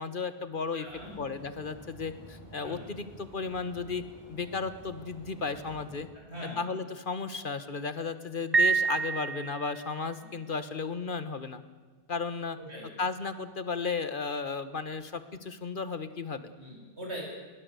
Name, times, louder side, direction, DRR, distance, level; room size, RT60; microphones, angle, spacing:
voice 1, 0.0-0.9 1.2-4.0 4.3-6.1 6.6-11.6 12.1-12.6 13.0-16.5, left 4 dB, 50° left, 12 dB, 1.4 m, -34 dB
voice 2, 0.7-1.1 2.6-2.9 6.1-6.6 10.2-10.3 12.6-12.9 16.6-17.2, equal, 85° right, -2 dB, 7.9 m, -42 dB
sound 1, 0.9-6.1, equal, 15° left, 7.3 m, -50 dB
Piano, 8.5-10.0, right 5 dB, 25° right, 0.6 m, -27 dB
21.0 x 19.5 x 8.1 m, 1.4 s
omnidirectional pair, 1.1 m